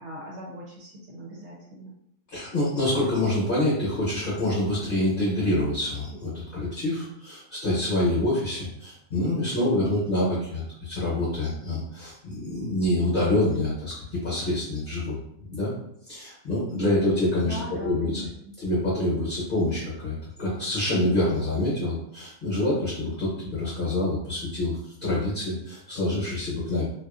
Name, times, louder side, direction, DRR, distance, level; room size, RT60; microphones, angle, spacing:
voice 1, 0.0-1.9 17.5-18.3, left 1 dB, 70° right, -3 dB, 0.8 m, -39 dB
voice 2, 2.3-15.2 15.5-15.7 16.1-17.5 17.8-18.2 18.6-26.8, left 1 dB, 50° left, -6 dB, 0.9 m, -26 dB
2.4 x 2.3 x 2.4 m, 0.72 s
omnidirectional pair, 1.3 m